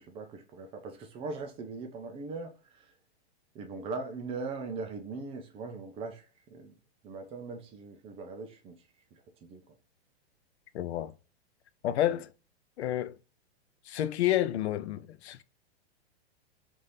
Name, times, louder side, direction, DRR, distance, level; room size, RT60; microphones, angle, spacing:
voice 1, 0.0-2.9 3.5-6.7 7.0-8.8 9.1-9.6 12.1-12.2, right 4 dB, 20° right, 0.4 m, -40 dB
voice 2, 10.7-11.1 11.8-12.3 12.8-13.2 13.9-15.4, left 12 dB, 80° left, 0.5 m, -29 dB
4.1 x 2.6 x 3.2 m
hypercardioid pair, 135°, 33 cm